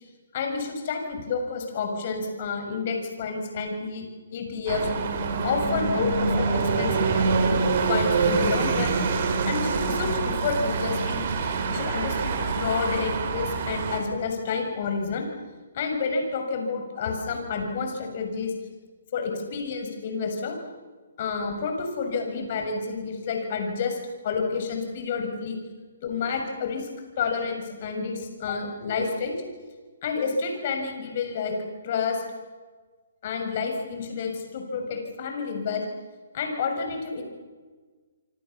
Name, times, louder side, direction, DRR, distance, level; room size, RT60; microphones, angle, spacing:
voice 1, 0.3-4.1 4.3-4.9 5.4-7.6 7.9-8.9 9.4-15.3 15.7-18.5 19.1-20.6 21.2-24.0 24.2-25.6 26.0-26.9 27.2-29.4 30.0-31.6 31.8-32.2 33.2-35.8 36.3-37.2, left 5 dB, 45° left, 4 dB, 6.9 m, -29 dB
sound 1, 4.7-14.0, right 4 dB, 45° right, 5.2 m, -25 dB
28.0 x 24.5 x 7.2 m, 1.4 s
figure-of-eight pair, 140°, 0 cm